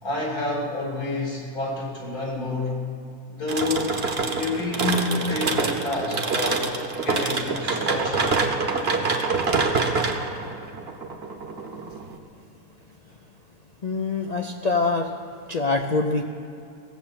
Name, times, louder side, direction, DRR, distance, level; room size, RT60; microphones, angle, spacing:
voice 1, 0.0-2.8 3.3-4.0 4.3-6.7 7.0-8.4, left 2 dB, 75° left, -2 dB, 3.6 m, -28 dB
sound 1, 3.5-12.2, right 4 dB, 45° right, 1.2 m, -26 dB
voice 2, 13.8-15.2 15.5-16.2, left 3 dB, 55° left, 3 dB, 0.4 m, -24 dB
17.5 x 7.6 x 7.5 m, 2.6 s
omnidirectional pair, 1.6 m